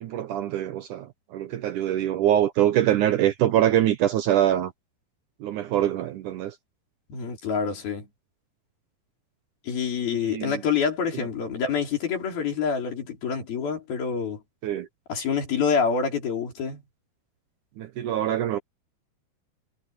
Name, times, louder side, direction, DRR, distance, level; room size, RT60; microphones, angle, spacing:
voice 1, 0.0-4.7 5.4-6.6 10.1-10.6 14.6-14.9 17.8-18.6, right 11 dB, 75° right, 2.0 m, -24 dB
voice 2, 7.1-8.1 9.6-14.4 15.1-16.8, left 6 dB, 70° left, 6.4 m, -27 dB
omnidirectional pair, 4.4 m